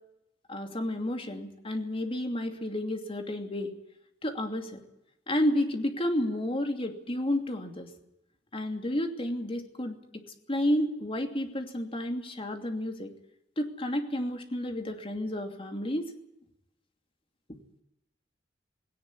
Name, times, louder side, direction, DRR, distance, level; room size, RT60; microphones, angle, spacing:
voice 1, 0.5-3.7 4.2-4.8 5.3-7.9 8.5-10.2 10.5-13.1 13.6-16.1, left 1 dB, 30° left, 5 dB, 2.7 m, -31 dB
18.5 x 18.0 x 9.8 m, 0.85 s
head